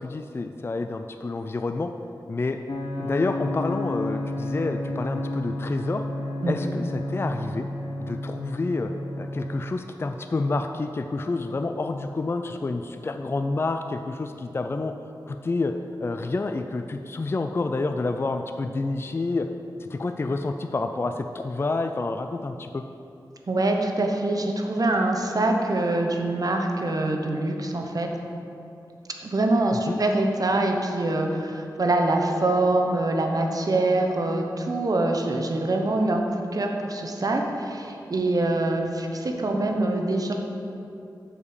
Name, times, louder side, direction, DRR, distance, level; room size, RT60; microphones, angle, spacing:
voice 1, 0.0-1.9 2.3-2.6 3.0-6.0 6.4-7.7 8.0-8.9 9.2-14.9 15.3-15.7 16.0-19.5 19.8-22.8 29.9-30.0, left 3 dB, 30° left, 6 dB, 0.3 m, -28 dB
sound 1, 2.7-9.7, left 1 dB, 70° left, 0.8 m, -31 dB
voice 2, 23.5-28.1 29.2-40.3, right 2 dB, 55° right, 3 dB, 0.9 m, -24 dB
7.3 x 5.2 x 6.5 m, 2.7 s
wide cardioid pair, 80°, 8 cm